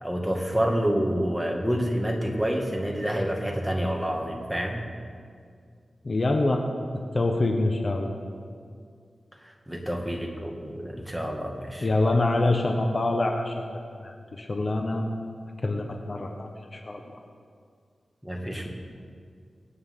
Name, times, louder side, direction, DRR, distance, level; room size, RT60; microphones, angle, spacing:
voice 1, 0.0-4.8 9.4-11.9 18.2-18.7, equal, ahead, 0 dB, 2.0 m, -28 dB
voice 2, 6.0-6.6 7.1-8.1 11.8-15.2 15.6-17.0, left 2 dB, 45° left, 3 dB, 1.1 m, -25 dB
25.0 x 8.9 x 3.8 m, 2.2 s
wide cardioid pair, 95°, 0 cm